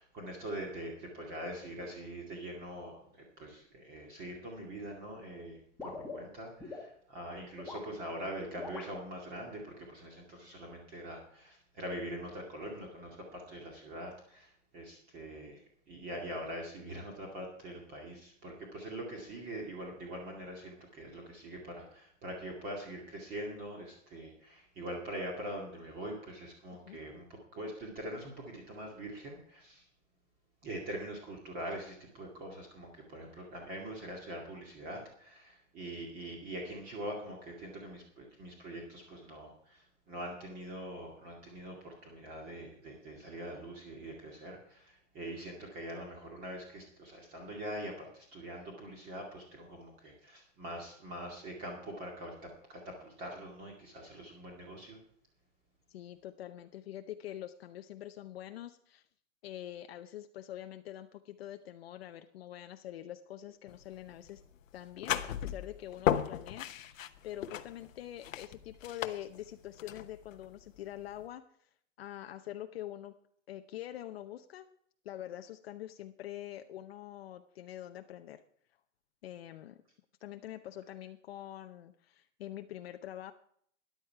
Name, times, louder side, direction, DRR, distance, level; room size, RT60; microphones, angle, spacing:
voice 1, 0.0-15.6 15.9-29.9 30.6-55.0, right 1 dB, 25° right, 0 dB, 2.3 m, -43 dB
sound 1, 5.8-6.9 7.5-7.9 8.6-8.9, left 4 dB, ahead, 1.5 m, -43 dB
voice 2, 55.9-59.0 59.4-64.4 64.7-71.7 72.0-73.1 73.5-74.7 75.0-78.4 79.2-79.8 80.2-83.3, left 12 dB, 50° left, 7 dB, 0.8 m, -45 dB
sound 2, 63.7-71.3, left 10 dB, 85° left, 1.1 m, -36 dB
13.5 x 10.5 x 4.6 m, 0.64 s
supercardioid pair, 170°, 38 cm